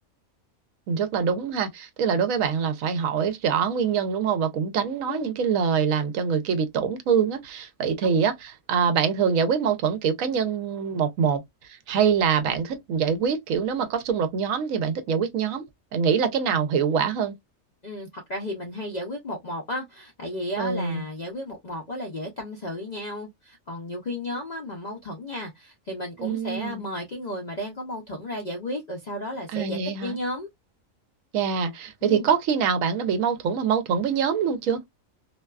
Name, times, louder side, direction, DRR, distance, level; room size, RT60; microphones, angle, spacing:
voice 1, 0.9-11.4 11.9-15.6 15.9-17.3 20.6-21.0 26.2-26.8 29.5-30.2 31.3-34.8, right 7 dB, 75° right, 0.9 m, -24 dB
voice 2, 17.8-30.5 32.0-32.3, left 1 dB, 60° left, 0.4 m, -33 dB
2.6 x 2.2 x 2.2 m
omnidirectional pair, 1.5 m